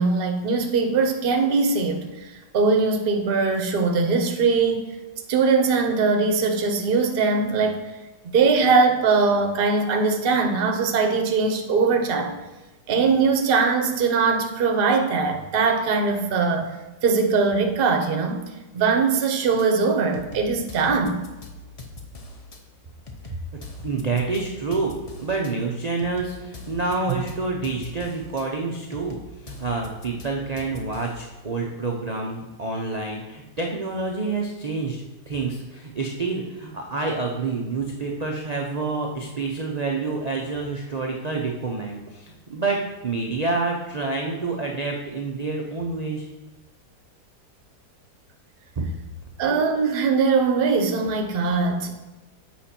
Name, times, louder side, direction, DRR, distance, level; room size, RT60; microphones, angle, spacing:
voice 1, 0.0-4.9 5.3-7.8 8.3-12.4 12.9-16.7 17.0-18.4 18.7-21.2 27.1-27.2 49.4-51.9, right 4 dB, 45° right, 4 dB, 0.8 m, -21 dB
sound 1, 19.6-19.7 20.1-22.6 23.1-25.5 26.0-28.4 28.9-31.3, left 2 dB, 65° left, 0.3 m, -42 dB
voice 2, 23.8-24.9 25.2-46.3 48.8-48.9, right 3 dB, 60° right, 0 dB, 0.4 m, -28 dB
7.5 x 5.1 x 4.3 m, 1.1 s
omnidirectional pair, 1.8 m